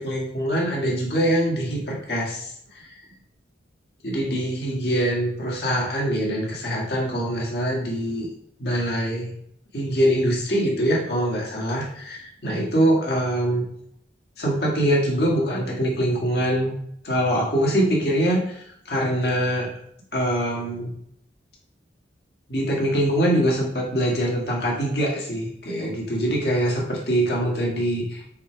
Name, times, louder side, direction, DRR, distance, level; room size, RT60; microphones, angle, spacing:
voice 1, 0.0-2.9 4.0-8.3 8.6-9.3 9.7-13.6 14.4-16.7 17.0-19.7 20.1-20.9 22.5-28.2, equal, 60° left, -3 dB, 1.8 m, -23 dB
5.8 x 4.0 x 4.6 m, 0.71 s
head